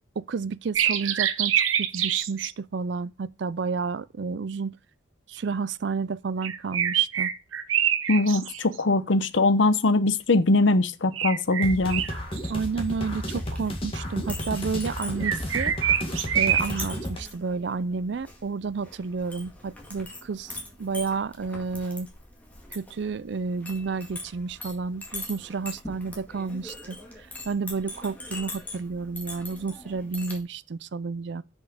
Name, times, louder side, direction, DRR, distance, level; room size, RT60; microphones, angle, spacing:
voice 1, 0.2-4.8 5.3-7.3 12.5-15.7 16.3-22.1 22.7-27.0 27.5-31.4, right 4 dB, 60° right, 0.4 m, -31 dB
sound 1, 0.8-2.5 6.4-8.8 11.1-12.5 15.2-16.9, right 9 dB, 85° right, 0.8 m, -25 dB
voice 2, 8.1-12.0, left 2 dB, 70° left, 0.8 m, -21 dB
sound 2, 11.6-17.2, equal, 30° left, 1.9 m, -32 dB
Chink clink, 11.8-30.4, left 2 dB, 10° left, 1.9 m, -43 dB
7.2 x 5.3 x 5.1 m
head